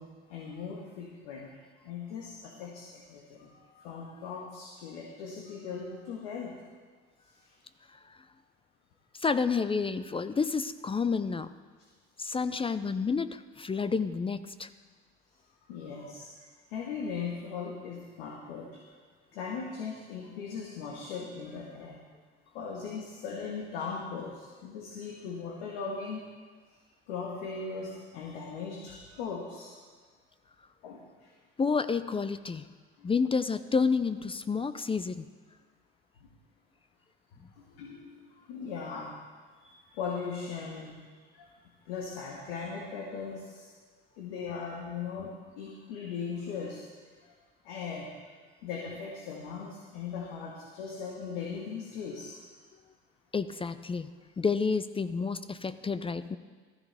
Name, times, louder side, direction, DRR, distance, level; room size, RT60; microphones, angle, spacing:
voice 1, 0.0-1.5 1.8-6.6 15.7-16.3 16.7-18.8 19.3-22.0 22.5-26.2 27.1-29.7 30.8-31.0 33.0-33.1 37.6-39.1 39.6-41.0 41.3-41.5 41.9-43.7 44.2-46.8 47.6-48.1 48.6-52.4, left 5 dB, 85° left, -1 dB, 1.6 m, -39 dB
voice 2, 9.1-11.5 12.2-14.7 31.6-32.7 33.0-35.2 53.3-56.4, left 5 dB, 20° left, 13 dB, 0.5 m, -30 dB
14.5 x 13.0 x 3.4 m, 1.5 s
supercardioid pair, 75°, 29 cm